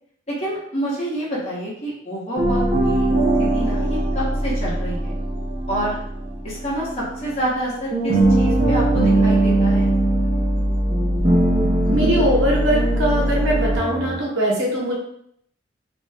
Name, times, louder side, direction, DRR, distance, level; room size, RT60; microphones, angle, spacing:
voice 1, 0.3-3.0 3.4-5.1 5.7-6.0 6.4-9.9, equal, 35° left, -7 dB, 1.0 m, -28 dB
sound 1, 2.4-7.6 7.9-14.2, right 1 dB, 30° right, 0.7 m, -20 dB
voice 2, 11.9-14.9, equal, 90° right, -3 dB, 0.9 m, -21 dB
2.6 x 2.2 x 3.3 m, 0.69 s
head